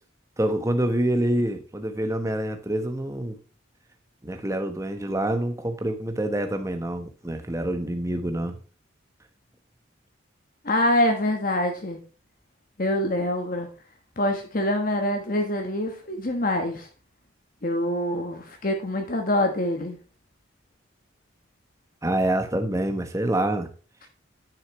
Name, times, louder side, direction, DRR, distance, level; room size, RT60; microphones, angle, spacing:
voice 1, 0.4-3.4 4.2-8.6 22.0-23.7, right 1 dB, 15° right, 7 dB, 1.1 m, -26 dB
voice 2, 10.6-12.0 12.8-13.7 14.2-16.9 17.6-20.0, left 1 dB, 45° left, 4 dB, 1.3 m, -25 dB
10.0 x 6.5 x 3.1 m, 0.37 s
head